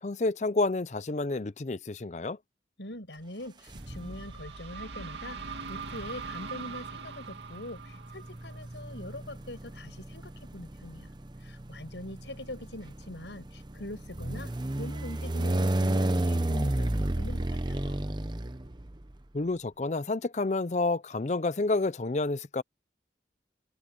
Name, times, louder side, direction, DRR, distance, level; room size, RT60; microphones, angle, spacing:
voice 1, 0.0-2.4 19.3-22.6, left 3 dB, 40° left, 0.5 m, -29 dB
voice 2, 2.8-11.1 11.4-16.9 17.2-18.0, left 1 dB, 85° left, 7.2 m, -43 dB
sound 1, 3.7-4.4 5.5-19.2, right 1 dB, 25° right, 0.8 m, -32 dB
sound 2, 3.7-9.4, right 5 dB, 80° right, 2.4 m, -42 dB
head